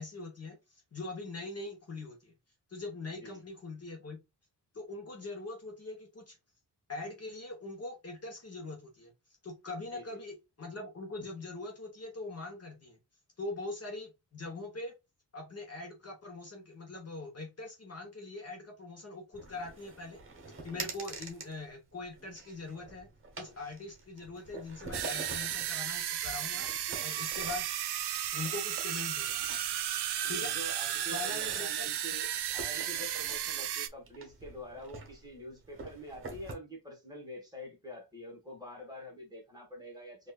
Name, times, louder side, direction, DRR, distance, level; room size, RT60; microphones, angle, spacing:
voice 1, 0.0-2.3 2.7-4.2 4.7-6.4 6.9-9.1 9.4-13.0 13.4-14.9 15.3-20.2 20.6-23.1 23.4-26.7 27.0-27.7 28.3-29.4 30.3-30.5 31.1-31.9, left 2 dB, 40° left, 1.0 m, -42 dB
voice 2, 3.1-3.4 9.9-10.2 30.2-40.3, equal, 10° right, 1.5 m, -46 dB
sound 1, 19.3-36.5, right 3 dB, 30° right, 1.1 m, -47 dB
sound 2, 24.9-33.9, right 11 dB, 80° right, 0.5 m, -34 dB
4.3 x 2.6 x 2.3 m
wide cardioid pair, 135°, 39 cm